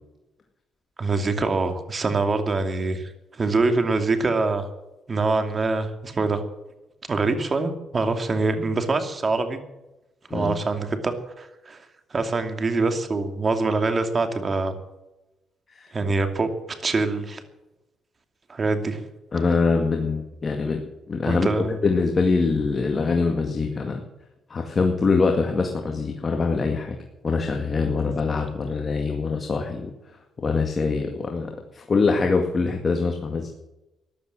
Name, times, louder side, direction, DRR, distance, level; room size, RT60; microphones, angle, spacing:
voice 1, 1.0-4.7 5.1-6.4 7.1-9.6 10.3-11.8 12.1-14.7 15.9-16.5 16.8-17.4 18.5-19.0 21.2-21.8, right 3 dB, 35° right, 7 dB, 2.6 m, -24 dB
voice 2, 19.3-20.8 21.1-24.0 24.5-27.0 27.2-29.9 30.4-33.5, left 4 dB, 35° left, 3 dB, 2.0 m, -23 dB
14.5 x 11.5 x 7.5 m, 0.97 s
cardioid pair, 90°, 0 cm